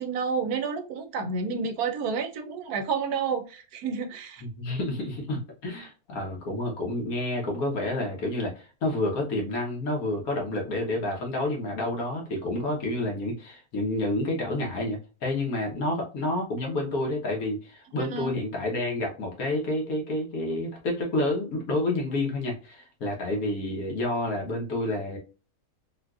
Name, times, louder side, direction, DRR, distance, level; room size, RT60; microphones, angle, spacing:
voice 1, 0.0-4.4 18.0-18.4, right 5 dB, 75° right, 1.1 m, -30 dB
voice 2, 4.4-25.2, left 1 dB, 70° left, 1.5 m, -29 dB
3.8 x 2.5 x 2.3 m
omnidirectional pair, 1.6 m